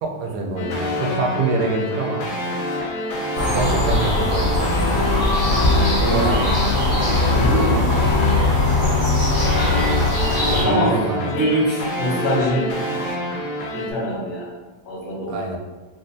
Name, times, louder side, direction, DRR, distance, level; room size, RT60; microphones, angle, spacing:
voice 1, 0.0-2.2 3.5-5.1 6.1-6.2 10.5-11.3 15.3-15.6, right 3 dB, 80° right, 1 dB, 1.2 m, -25 dB
sound 1, 0.6-13.9, left 2 dB, 70° left, 1.1 m, -27 dB
sound 2, 3.3-10.6, left 2 dB, 35° left, 1.3 m, -20 dB
Screaming, 3.9-4.5 5.0-5.6 5.9-6.6 6.9-8.8 9.3-10.0, left 1 dB, 10° left, 0.6 m, -33 dB
voice 2, 6.0-6.5 6.9-8.2 10.6-11.0 11.2-12.7 13.7-14.5 14.9-15.4, right 1 dB, 90° left, -5 dB, 1.6 m, -24 dB
4.1 x 2.1 x 2.6 m, 1.3 s
omnidirectional pair, 2.1 m